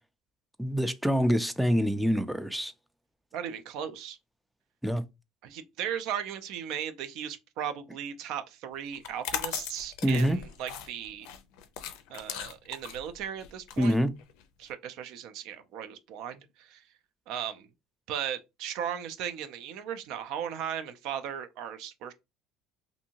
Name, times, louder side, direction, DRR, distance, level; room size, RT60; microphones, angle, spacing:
voice 1, 0.6-2.7 4.8-5.0 10.0-10.4 13.8-14.1, equal, ahead, 0.3 m, -25 dB
voice 2, 3.3-4.2 5.4-11.3 12.1-14.0 14.6-16.8 17.3-17.7 18.1-22.1, right 9 dB, 65° right, 0.4 m, -37 dB
sound 1, 8.9-14.7, left 9 dB, 80° left, 0.4 m, -39 dB
2.6 x 2.6 x 2.8 m
cardioid pair, 125°, 0 cm